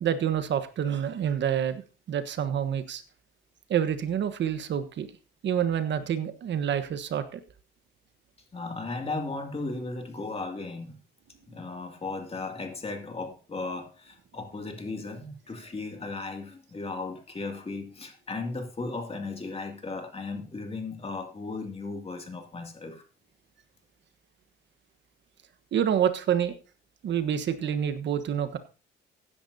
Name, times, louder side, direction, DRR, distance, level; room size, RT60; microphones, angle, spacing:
voice 1, 0.0-1.8 2.1-3.0 3.7-5.1 5.4-7.4 25.7-26.5 27.0-28.6, right 9 dB, 65° right, 11 dB, 1.3 m, -27 dB
voice 2, 8.5-11.0 11.5-23.0, left 3 dB, 30° left, 3 dB, 2.6 m, -36 dB
15.5 x 10.5 x 2.8 m, 0.34 s
cardioid pair, 90°, 20 cm